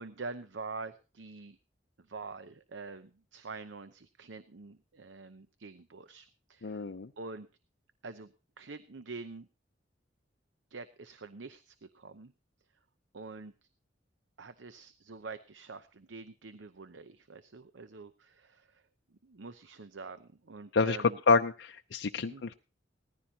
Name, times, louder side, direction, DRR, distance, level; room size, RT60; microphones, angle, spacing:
voice 1, 0.0-1.6 2.0-6.9 7.2-7.5 8.0-9.5 10.7-12.3 13.1-13.5 14.4-18.8 19.2-21.2 22.2-22.4, right 4 dB, 90° right, 11 dB, 0.8 m, -46 dB
voice 2, 6.6-7.1 20.7-21.0 21.3-22.5, left 4 dB, 75° left, 6 dB, 0.6 m, -28 dB
18.5 x 14.5 x 2.8 m, 0.32 s
head